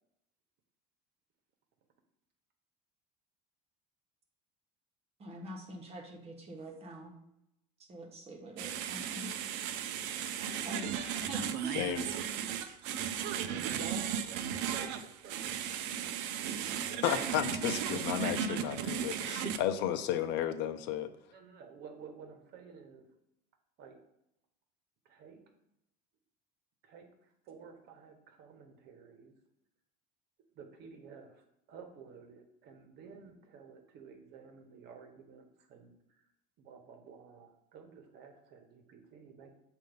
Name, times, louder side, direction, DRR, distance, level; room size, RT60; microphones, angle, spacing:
voice 1, 5.2-7.1 7.9-9.3 10.6-11.8, right 1 dB, 35° right, 1.3 m, -45 dB
sound 1, 8.6-19.6, right 8 dB, 80° right, 0.5 m, -36 dB
voice 2, 10.2-10.7 12.5-15.8 16.4-17.0 21.3-23.1 23.8-24.0 25.0-25.4 26.8-29.3 30.5-36.3 36.6-39.5, right 6 dB, 60° right, 1.1 m, -52 dB
voice 3, 11.7-12.1 17.0-21.1, left 10 dB, 70° left, 0.6 m, -33 dB
7.6 x 2.7 x 5.2 m
cardioid pair, 130°, 19 cm